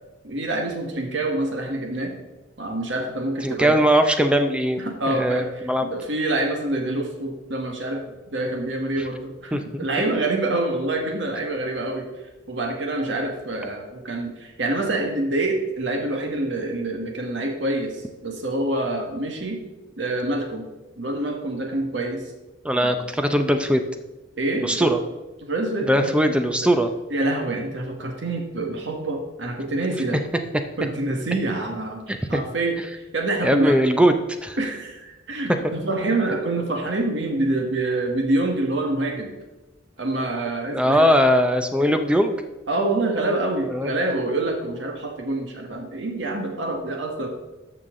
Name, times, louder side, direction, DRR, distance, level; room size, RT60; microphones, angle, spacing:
voice 1, 0.2-2.1 2.6-3.8 4.8-8.0 8.3-12.1 12.5-19.6 20.0-20.6 21.0-22.2 22.8-22.9 24.4-24.9 25.4-26.1 27.1-30.2 30.8-32.8 33.1-33.8 34.6-39.3 40.0-41.1 41.8-41.9 42.7-47.3, right 2 dB, 65° right, 2 dB, 1.5 m, -26 dB
voice 2, 3.4-5.9 9.5-9.9 22.6-23.8 24.6-25.0 25.9-26.9 32.1-32.4 33.4-34.1 34.4-34.6 40.7-42.4 43.7-43.9, equal, 5° right, 7 dB, 0.6 m, -20 dB
13.0 x 5.8 x 3.8 m, 1.1 s
head